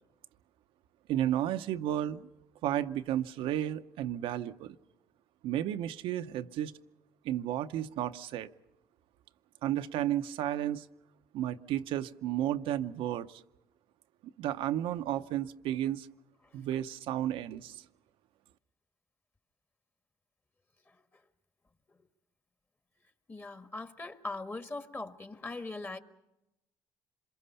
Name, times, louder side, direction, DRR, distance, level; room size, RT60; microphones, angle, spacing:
voice 1, 1.1-2.3 2.6-4.7 5.4-6.7 7.2-8.5 9.6-10.9 11.3-13.4 14.4-16.1 16.5-17.8, right 12 dB, 80° right, 0.7 m, -32 dB
voice 2, 23.3-26.0, left 2 dB, 25° left, 1.6 m, -40 dB
26.5 x 22.5 x 5.6 m
cardioid pair, 85°, 9 cm